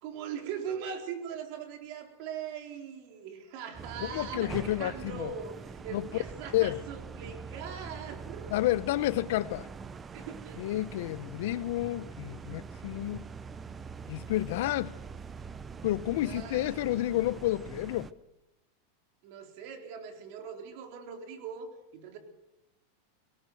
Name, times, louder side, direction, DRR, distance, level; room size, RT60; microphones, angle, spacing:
voice 1, 0.0-8.6 10.1-11.1 16.2-16.9 19.2-22.2, right 7 dB, 55° right, 4.0 m, -41 dB
sound 1, 3.7-18.1, right 5 dB, 15° right, 0.7 m, -44 dB
voice 2, 4.1-5.3 5.9-6.0 6.5-6.8 8.5-9.7 10.6-13.2 14.1-14.9 15.8-18.1, left 15 dB, 65° left, 0.8 m, -30 dB
18.5 x 18.5 x 7.9 m
supercardioid pair, 145°, 0 cm